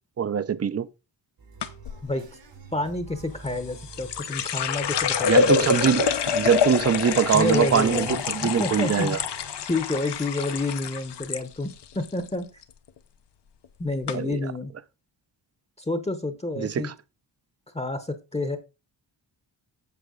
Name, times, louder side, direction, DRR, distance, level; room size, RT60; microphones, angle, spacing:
voice 1, 0.2-0.9 5.2-9.2 14.1-14.5 16.6-16.9, right 7 dB, 35° right, 0.6 m, -23 dB
sound 1, 1.4-9.6, right 5 dB, 85° right, 3.4 m, -46 dB
sound 2, 1.6-2.0 3.5-11.4 11.7-12.3 12.6-13.0 13.6-13.7 14.1-14.2, left 7 dB, 70° left, 0.9 m, -26 dB
voice 2, 2.7-5.7 7.3-9.2 9.7-12.5 13.8-14.7 15.9-16.9 17.7-18.6, left 2 dB, 15° left, 0.9 m, -29 dB
8.4 x 7.1 x 3.8 m
wide cardioid pair, 115°, 43 cm